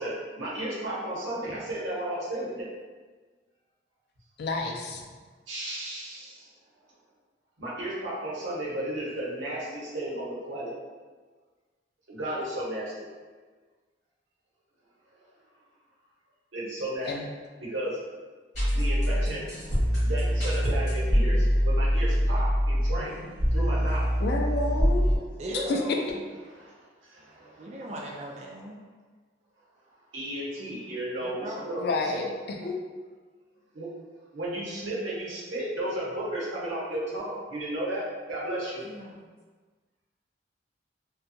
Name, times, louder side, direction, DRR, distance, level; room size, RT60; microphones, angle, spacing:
voice 1, 0.0-2.7 5.5-6.5 7.6-10.7 12.1-13.1 16.5-17.1 17.6-18.0 18.7-19.5 20.0-23.2 23.5-24.1 26.4-26.6 27.3-27.9 30.1-32.2 32.6-32.7 33.7-33.9 34.3-38.8, right 1 dB, 90° right, -6 dB, 0.8 m, -34 dB
voice 2, 4.4-5.0 17.1-17.3 24.2-25.0 25.5-25.8 31.8-32.3 32.6-32.8, left 3 dB, 55° left, 2 dB, 0.3 m, -29 dB
sound 1, 18.5-25.2, equal, 40° left, 1.3 m, -24 dB
voice 3, 25.4-26.2 27.6-28.8 31.2-31.8 32.0-32.3 38.8-39.2, equal, 35° right, -1 dB, 0.3 m, -37 dB
2.7 x 2.2 x 2.6 m, 1.4 s
head